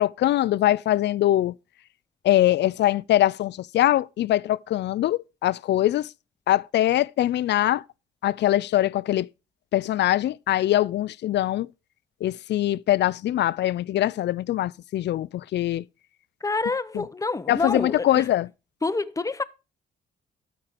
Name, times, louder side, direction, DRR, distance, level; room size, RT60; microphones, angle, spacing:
voice 1, 0.0-1.5 2.2-6.1 6.5-7.8 8.2-9.3 9.7-11.7 12.2-15.8 16.9-17.0 17.5-18.5, left 13 dB, 60° left, 0.4 m, -22 dB
voice 2, 16.4-18.3 18.8-19.4, left 3 dB, 15° left, 0.7 m, -27 dB
13.0 x 4.5 x 5.0 m
cardioid pair, 90°, 20 cm